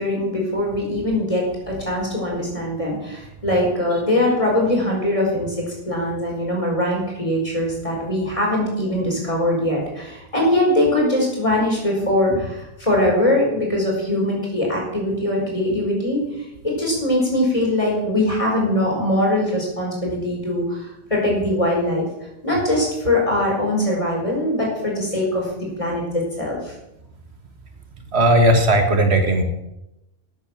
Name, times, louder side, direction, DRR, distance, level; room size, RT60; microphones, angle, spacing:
voice 1, 0.0-16.2 16.6-22.1 22.4-26.7, left 1 dB, 30° left, -2 dB, 5.0 m, -22 dB
voice 2, 28.1-29.4, right 1 dB, 85° right, 5 dB, 2.0 m, -16 dB
12.0 x 8.7 x 7.4 m, 0.89 s
omnidirectional pair, 1.1 m